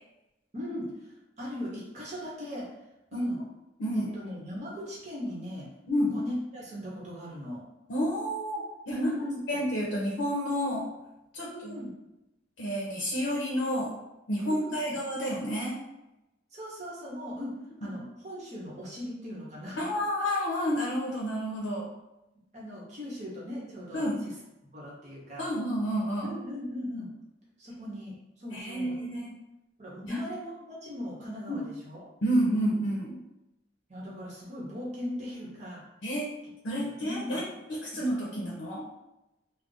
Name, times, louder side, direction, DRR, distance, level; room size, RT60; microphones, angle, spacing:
voice 1, 0.5-2.7 3.1-3.4 3.9-5.7 6.1-7.6 8.9-9.6 11.4-11.9 14.5-14.9 16.5-17.6 17.8-19.9 22.5-24.0 24.7-25.4 26.2-27.1 27.6-29.1 29.8-32.1 32.8-33.0 33.9-35.8 37.0-37.4, left 1 dB, 40° right, -5 dB, 0.8 m, -38 dB
voice 2, 7.9-9.1 9.5-10.9 11.3-11.8 12.6-14.0 14.3-15.8 17.8-18.0 19.8-21.9 23.9-24.2 25.4-26.3 28.5-29.3 30.0-30.3 31.5-31.6 32.2-33.2 36.0-36.3 36.6-38.9, equal, 85° left, -3 dB, 0.6 m, -30 dB
2.4 x 2.0 x 3.8 m, 0.96 s
head